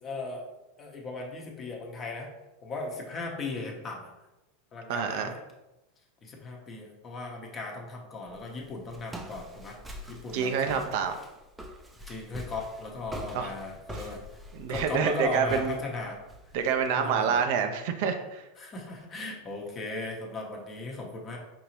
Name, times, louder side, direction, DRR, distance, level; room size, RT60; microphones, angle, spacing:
voice 1, 0.0-0.5 0.8-2.3 2.6-4.1 4.7-5.4 6.2-9.8 10.1-10.8 12.1-14.2 14.7-16.2 17.0-17.4 18.6-21.4, left 3 dB, 30° left, 1 dB, 1.0 m, -37 dB
voice 2, 4.9-5.4 10.3-11.1 13.3-13.5 13.9-14.1 14.5-15.8 16.5-18.5, right 7 dB, 60° right, 6 dB, 0.5 m, -27 dB
Walk footsteps, 8.3-16.9, equal, 10° right, 0.5 m, -44 dB
5.2 x 2.8 x 3.1 m, 1.0 s
hypercardioid pair, 105°, 0 cm